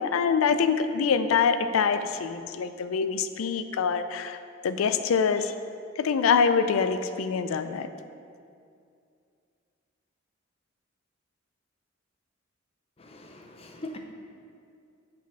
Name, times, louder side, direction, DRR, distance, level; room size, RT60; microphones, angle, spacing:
voice 1, 0.0-4.4 4.6-5.5 6.0-7.9, left 6 dB, 85° left, 11 dB, 0.4 m, -25 dB
voice 2, 13.0-14.0, left 1 dB, 30° left, 3 dB, 0.6 m, -42 dB
6.1 x 4.2 x 6.0 m, 2.4 s
head